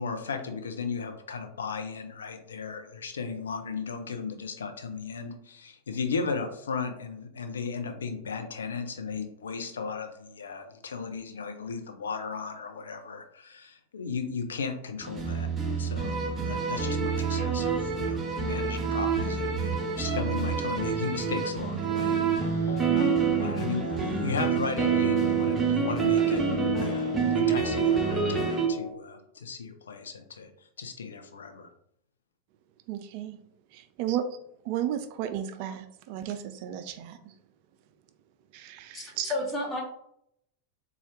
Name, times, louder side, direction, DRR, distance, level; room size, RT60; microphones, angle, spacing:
voice 1, 0.0-15.5 15.8-31.7, left 5 dB, 70° left, 6 dB, 0.5 m, -36 dB
sound 1, 15.0-28.7, right 6 dB, 15° right, 0.7 m, -27 dB
sound 2, 22.0-28.9, left 4 dB, 40° left, 1.0 m, -35 dB
voice 2, 32.9-33.4 33.7-34.2 34.7-37.2 38.5-39.3, right 11 dB, 45° right, 9 dB, 0.3 m, -33 dB
voice 3, 38.9-39.8, left 2 dB, 15° left, -2 dB, 0.9 m, -31 dB
4.1 x 2.3 x 3.1 m, 0.73 s
figure-of-eight pair, 90°, 0 cm